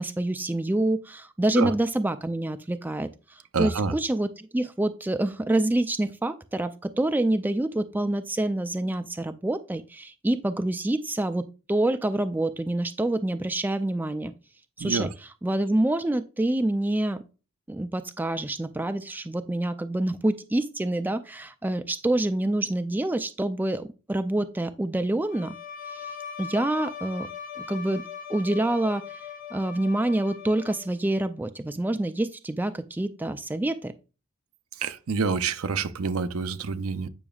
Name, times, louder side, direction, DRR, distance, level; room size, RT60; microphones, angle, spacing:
voice 1, 0.0-3.1 3.6-14.3 14.8-15.1 15.4-17.2 17.7-25.5 25.9-26.0 26.4-27.3 27.7-28.0 28.3-29.0 29.5-33.9, right 1 dB, 10° right, 0.3 m, -27 dB
voice 2, 3.5-3.9 14.8-15.1 34.8-37.1, right 5 dB, 80° right, 0.6 m, -27 dB
Bowed string instrument, 25.3-31.1, left 7 dB, 40° left, 1.0 m, -40 dB
8.8 x 5.9 x 2.3 m
head